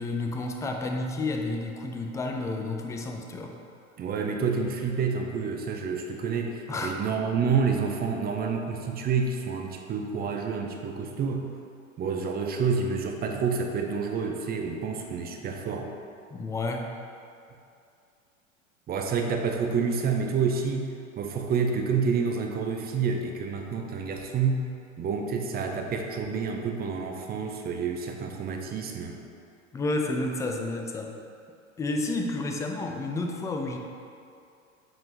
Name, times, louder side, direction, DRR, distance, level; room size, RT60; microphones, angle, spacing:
voice 1, 0.0-3.6 6.7-7.0 16.3-16.9 29.7-31.2 31.8-33.8, left 2 dB, 10° left, 3 dB, 0.4 m, -30 dB
voice 2, 4.0-11.5 12.0-15.9 18.9-20.9 21.2-24.6 25.0-29.2, right 5 dB, 25° right, 3 dB, 0.7 m, -28 dB
7.8 x 4.7 x 3.9 m, 2.5 s
hypercardioid pair, 95°, 41 cm